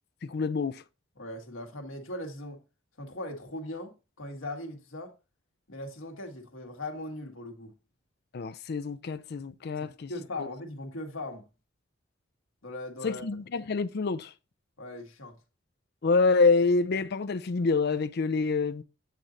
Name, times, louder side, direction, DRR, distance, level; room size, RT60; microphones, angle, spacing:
voice 1, 0.2-0.8 8.3-10.1 10.4-10.5 13.0-14.3 16.0-18.8, left 4 dB, 55° left, 0.5 m, -26 dB
voice 2, 1.2-2.6 3.0-5.1 5.7-7.7 9.8-11.5 12.6-13.3 14.8-15.4, left 1 dB, 80° left, 1.6 m, -39 dB
8.3 x 3.9 x 4.3 m
head